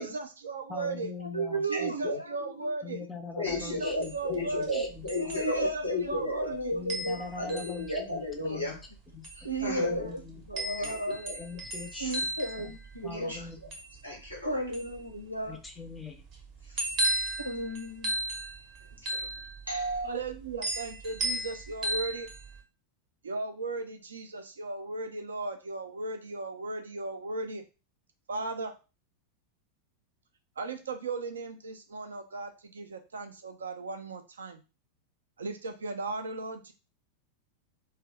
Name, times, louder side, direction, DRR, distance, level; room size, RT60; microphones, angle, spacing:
voice 1, 0.0-1.1 1.7-3.0 3.5-4.8 5.4-6.7 20.0-22.3 23.2-27.6 28.3-28.7 30.6-34.6 35.4-36.7, right 3 dB, 70° right, 6 dB, 0.4 m, -36 dB
voice 2, 0.7-1.6 2.8-5.4 6.7-8.7 9.1-9.5 9.8-10.4 11.4-12.1 12.6-12.7 13.0-13.6 15.4-16.2, left 4 dB, 15° left, 5 dB, 0.6 m, -42 dB
voice 3, 1.2-2.7 3.4-3.6 5.1-6.1 6.4-7.5 8.4-8.6 9.4-10.2 10.5-11.3 12.0-13.5 14.4-15.6 17.4-18.1, right 1 dB, 90° left, 5 dB, 0.5 m, -34 dB
voice 4, 1.7-2.2 3.4-6.5 7.4-8.8 9.4-10.1 10.5-11.4 11.9-12.2 13.1-13.4 14.0-14.6 16.7-17.2 19.1-19.3 19.7-20.1, left 1 dB, 90° right, -1 dB, 1.3 m, -34 dB
sound 1, 3.5-22.6, right 1 dB, 40° right, 0.7 m, -36 dB
2.7 x 2.3 x 3.4 m, 0.30 s
figure-of-eight pair, 90°, 0 cm